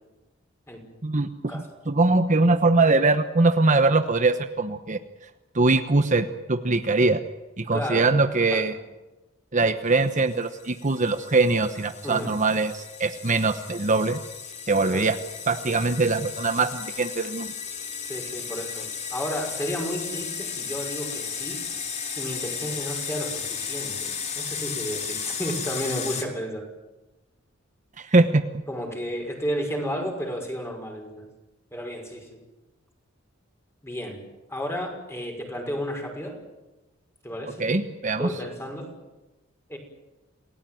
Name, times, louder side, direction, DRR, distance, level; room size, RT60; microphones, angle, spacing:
voice 1, 1.9-5.0 5.5-7.2 7.6-8.7 9.5-14.2 14.7-15.2 15.5-17.5 28.0-28.5 37.6-38.3, right 3 dB, 40° right, 8 dB, 1.1 m, -22 dB
voice 2, 7.7-8.1 8.5-8.7 12.0-12.3 14.8-15.1 18.0-21.6 22.2-26.6 28.7-31.3 31.7-32.4 33.8-34.2 34.5-36.4 37.2-37.7 38.2-38.9 39.7-39.8, equal, 15° left, 2 dB, 5.9 m, -32 dB
sound 1, 10.2-26.2, left 6 dB, 35° left, 3.1 m, -35 dB
28.5 x 18.0 x 9.4 m, 1.1 s
head